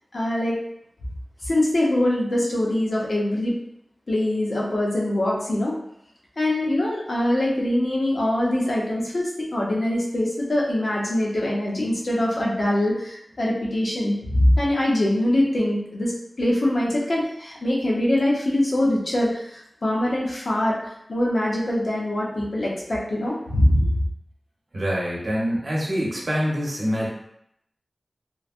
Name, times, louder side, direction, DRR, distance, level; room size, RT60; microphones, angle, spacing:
voice 1, 0.1-0.6 1.4-3.5 4.1-5.7 6.4-16.1 16.4-20.8 21.1-24.0, left 1 dB, 65° left, -4 dB, 0.7 m, -23 dB
voice 2, 24.7-27.1, equal, 55° right, -5 dB, 0.9 m, -25 dB
3.1 x 2.2 x 2.4 m, 0.75 s
wide cardioid pair, 80°, 0 cm